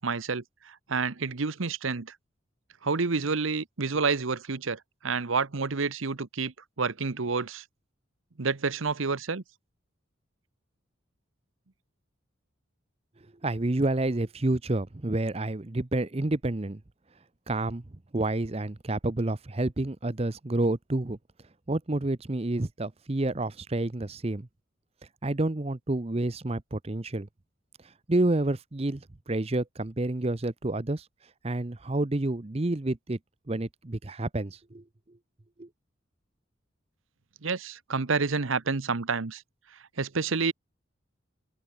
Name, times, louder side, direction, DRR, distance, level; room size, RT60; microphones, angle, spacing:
voice 1, 0.0-2.2 2.8-7.6 8.4-9.4 37.4-39.4 40.0-40.5, right 4 dB, 85° right, 1.0 m, -29 dB
voice 2, 13.4-16.8 17.5-17.8 18.1-21.2 21.7-24.5 25.2-27.3 28.1-29.0 29.3-31.0 31.4-33.2 33.5-34.8 35.6-35.7, right 2 dB, 30° right, 0.7 m, -29 dB
open air
head